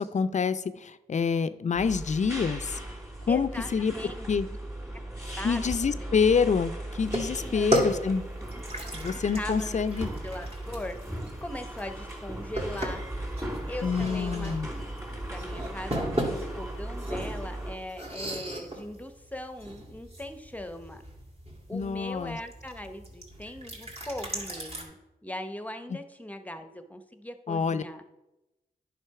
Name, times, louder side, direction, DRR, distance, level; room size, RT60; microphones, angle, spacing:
voice 1, 0.0-2.8 3.3-3.9 4.3-4.5 5.4-8.2 8.9-10.1 13.8-14.7 21.7-22.4 27.5-27.8, left 5 dB, 50° left, 13 dB, 0.5 m, -27 dB
sound 1, 1.7-17.8, right 1 dB, 20° right, 2.8 m, -37 dB
voice 2, 3.3-4.3 5.4-6.1 7.4-7.8 8.5-8.9 9.4-9.8 10.2-11.0 11.4-13.0 13.7-14.6 15.3-21.0 21.7-25.0 25.2-28.0, left 1 dB, 10° left, 8 dB, 0.8 m, -40 dB
sound 2, 7.0-24.8, right 1 dB, 40° right, 2.3 m, -36 dB
9.9 x 5.2 x 4.7 m, 0.98 s
cardioid pair, 65°, 16 cm